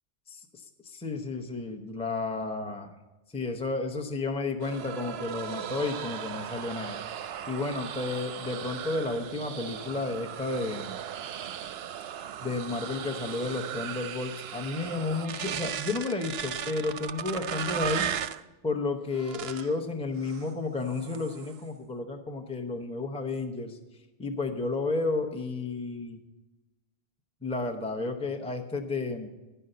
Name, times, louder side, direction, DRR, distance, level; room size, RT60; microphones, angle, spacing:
voice 1, 0.3-2.9 3.3-11.0 12.4-18.1 18.6-23.8 24.2-26.2 27.4-29.3, left 3 dB, 5° left, 4 dB, 0.7 m, -32 dB
sound 1, 4.6-18.4 19.1-19.8 20.2-20.5 20.9-21.6, right 9 dB, 65° right, 0.7 m, -37 dB
11.5 x 5.6 x 7.8 m, 1.1 s
omnidirectional pair, 1.2 m